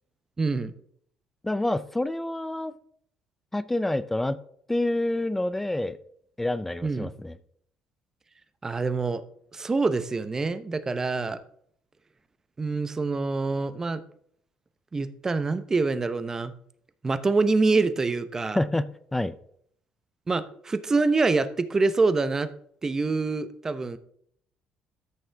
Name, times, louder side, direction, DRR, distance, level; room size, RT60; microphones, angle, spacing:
voice 1, 0.4-0.7 6.8-7.1 8.6-9.2 9.5-11.4 12.6-14.0 14.9-16.5 17.0-18.6 20.3-22.5 22.8-24.0, right 3 dB, 25° right, 12 dB, 0.8 m, -25 dB
voice 2, 1.4-2.8 3.5-4.4 4.7-6.0 6.4-7.3 18.6-19.4, left 1 dB, 10° left, 15 dB, 0.5 m, -27 dB
13.5 x 6.4 x 3.4 m, 0.65 s
cardioid pair, 105°, 2 cm